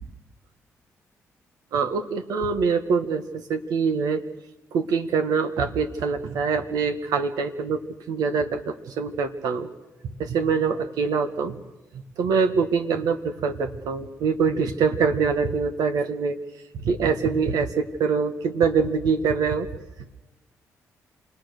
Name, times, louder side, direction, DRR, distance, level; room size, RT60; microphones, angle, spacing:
voice 1, 1.7-4.2 4.7-7.8 8.1-9.7 10.0-11.6 12.2-16.4 16.8-19.7, right 5 dB, 80° right, 8 dB, 1.6 m, -24 dB
27.5 x 19.0 x 6.7 m, 1.1 s
supercardioid pair, 55°, 6 cm